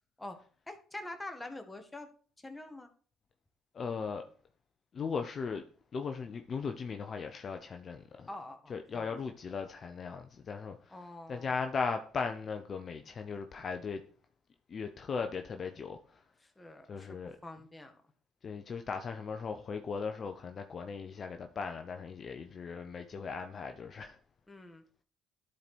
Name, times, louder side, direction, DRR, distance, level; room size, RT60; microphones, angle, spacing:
voice 1, 0.7-2.1 2.4-2.9 8.3-9.1 10.9-11.5 16.6-17.2 17.4-18.0 24.5-24.8, left 2 dB, 15° left, 1.7 m, -45 dB
voice 2, 3.7-4.2 4.9-5.6 5.9-8.3 8.7-11.0 11.3-14.0 14.7-16.2 16.9-17.4 18.4-24.2, left 5 dB, 45° left, 0.7 m, -38 dB
11.5 x 4.5 x 4.2 m
supercardioid pair, 70°, 0 cm